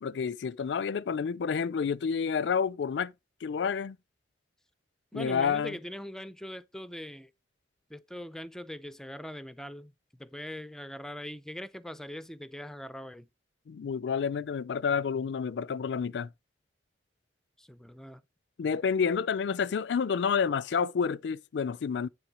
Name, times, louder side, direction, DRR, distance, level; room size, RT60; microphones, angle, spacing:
voice 1, 0.0-3.1 3.4-4.0 5.1-5.7 13.7-16.3 18.6-22.1, left 6 dB, 75° left, 0.4 m, -29 dB
voice 2, 5.1-7.3 7.9-13.3 17.6-18.2, equal, 5° left, 0.4 m, -41 dB
10.0 x 3.5 x 6.1 m
head